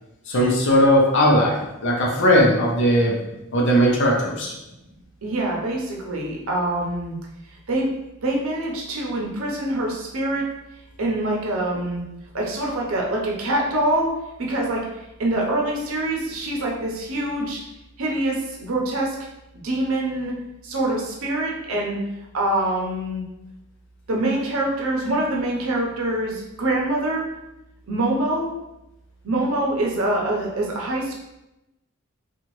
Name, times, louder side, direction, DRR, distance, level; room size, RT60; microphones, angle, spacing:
voice 1, 0.3-3.2 3.5-4.5, equal, 55° left, -2 dB, 0.6 m, -18 dB
voice 2, 5.2-7.1 7.7-7.9 8.2-10.4 11.0-12.0 12.3-14.1 14.4-17.6 18.0-19.2 19.6-20.3 20.6-22.0 22.3-23.2 24.1-27.2 27.9-28.5 29.2-31.2, right 1 dB, 75° right, -2 dB, 0.7 m, -25 dB
2.8 x 2.4 x 3.0 m, 0.93 s
head